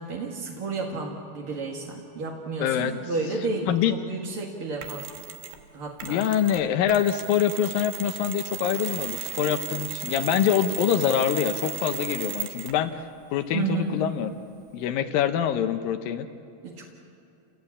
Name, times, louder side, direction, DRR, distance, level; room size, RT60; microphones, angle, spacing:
voice 1, 0.0-5.1 5.7-6.2 13.5-14.0 16.6-16.8, right 3 dB, 50° right, -1 dB, 1.8 m, -31 dB
voice 2, 2.6-2.9 3.7-4.0 6.0-12.9 13.3-14.3 14.7-16.3, left 10 dB, 75° left, 9 dB, 2.3 m, -25 dB
Mechanisms, 4.8-5.6 6.0-12.9, right 10 dB, 70° right, 3.0 m, -36 dB
29.5 x 17.0 x 8.5 m, 2.7 s
omnidirectional pair, 4.7 m